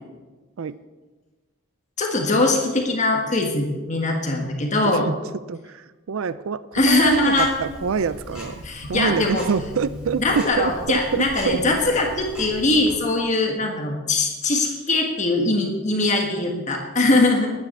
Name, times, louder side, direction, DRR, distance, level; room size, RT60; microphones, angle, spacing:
voice 1, 2.0-5.1 6.7-7.5 8.6-9.5 10.2-17.5, left 2 dB, 35° left, 2 dB, 1.6 m, -21 dB
voice 2, 4.8-5.2 5.5-11.6, right 6 dB, 70° right, 15 dB, 0.4 m, -26 dB
Tick-tock, 6.7-12.9, equal, 5° right, 5.5 m, -39 dB
11.0 x 9.4 x 8.4 m, 1.3 s
head